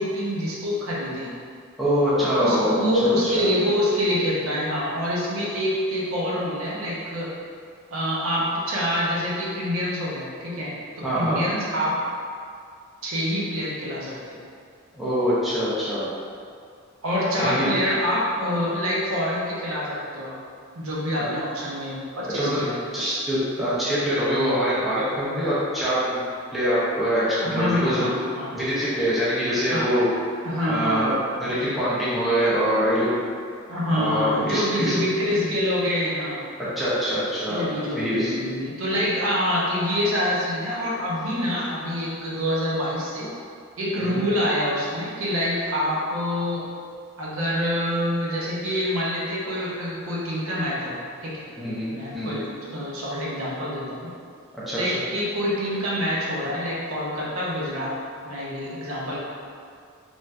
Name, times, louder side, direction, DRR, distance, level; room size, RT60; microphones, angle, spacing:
voice 1, 0.0-1.3 2.2-7.3 7.9-12.0 13.0-14.4 17.0-20.4 20.8-22.8 27.4-28.6 29.7-29.9 30.4-31.0 33.7-36.4 37.5-43.3 43.8-46.6 47.2-51.4 51.9-54.1 54.7-58.0 58.2-59.2, equal, 65° right, -6 dB, 0.6 m, -26 dB
voice 2, 1.8-2.8 3.2-3.5 11.0-11.4 14.9-16.1 17.4-17.7 22.3-22.6 22.9-26.2 26.5-28.1 28.5-30.1 30.7-33.1 33.9-34.9 36.6-37.7 37.9-38.3 44.0-44.2 51.6-52.4 54.5-54.8, equal, ahead, -11 dB, 0.5 m, -24 dB
3.2 x 2.6 x 2.2 m, 2.3 s
head